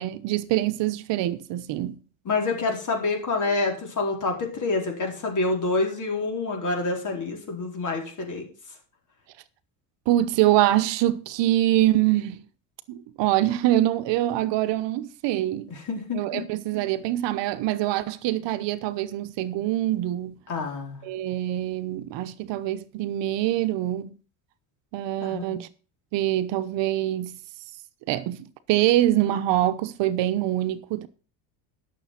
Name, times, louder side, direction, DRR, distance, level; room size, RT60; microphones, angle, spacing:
voice 1, 0.0-2.0 10.1-12.4 12.9-15.7 16.1-20.4 21.0-24.2 24.9-25.7 26.1-27.4 28.1-31.1, right 14 dB, 65° right, 1.0 m, -24 dB
voice 2, 2.2-8.5 15.7-16.4 20.5-21.0 25.2-25.6, left 3 dB, 40° left, 4.3 m, -27 dB
12.0 x 7.0 x 5.9 m
cardioid pair, 130°, 47 cm